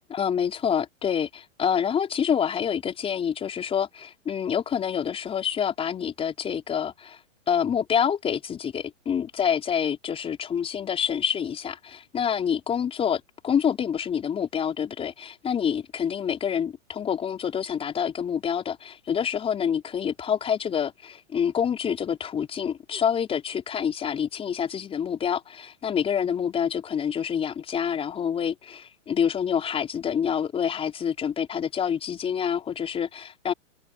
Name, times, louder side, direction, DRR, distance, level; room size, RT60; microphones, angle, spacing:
voice 1, 0.1-7.2 7.5-33.5, left 8 dB, 15° left, 4.9 m, -27 dB
hypercardioid pair, 150°, 39 cm